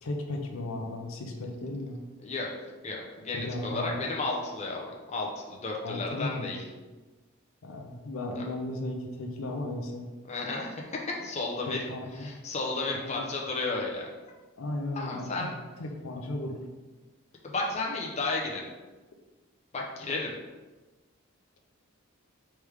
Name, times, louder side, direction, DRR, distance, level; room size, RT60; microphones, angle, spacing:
voice 1, 0.0-2.0 3.3-4.1 5.8-6.5 7.6-10.1 11.7-12.3 12.9-13.3 14.6-15.3 15.8-16.6, left 2 dB, 70° left, 3 dB, 0.5 m, -35 dB
voice 2, 2.8-6.6 8.4-8.5 10.3-10.7 11.2-11.8 12.2-14.1 15.0-15.5 17.4-18.6 19.7-20.3, left 3 dB, 30° left, -1 dB, 0.6 m, -33 dB
3.4 x 3.2 x 4.7 m, 1.2 s
head